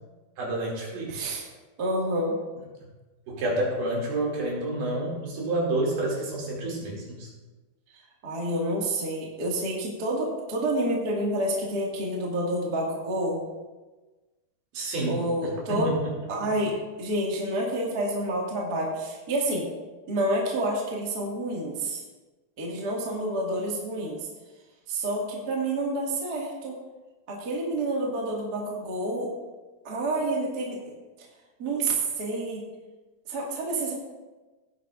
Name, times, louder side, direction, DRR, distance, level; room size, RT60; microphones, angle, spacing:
voice 1, 0.4-1.3 3.3-7.3 14.7-15.9, right 1 dB, 65° right, -3 dB, 4.3 m, -29 dB
voice 2, 1.1-1.4 1.8-2.4 7.9-13.4 15.0-15.9 16.3-19.7 20.1-22.0 22.6-24.3 24.9-26.8 27.3-29.3 29.8-30.8 31.6-32.7 33.3-33.9, right 1 dB, 35° right, -3 dB, 1.6 m, -28 dB
17.0 x 9.8 x 2.6 m, 1.2 s
omnidirectional pair, 4.8 m